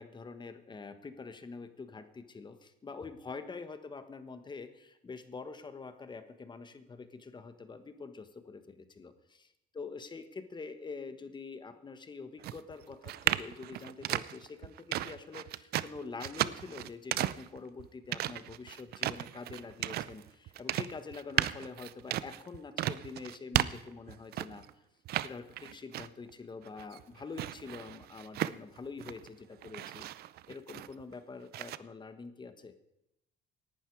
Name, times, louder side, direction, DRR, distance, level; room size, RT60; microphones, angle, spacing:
voice 1, 0.0-24.6 25.2-30.0 30.5-32.7, left 4 dB, 25° left, 10 dB, 1.4 m, -45 dB
sound 1, 12.4-24.7 25.1-26.3 26.7-29.3 29.6-31.1 31.5-31.8, right 14 dB, 70° right, 0.6 m, -35 dB
18.0 x 11.5 x 4.8 m, 0.87 s
cardioid pair, 110°, 17 cm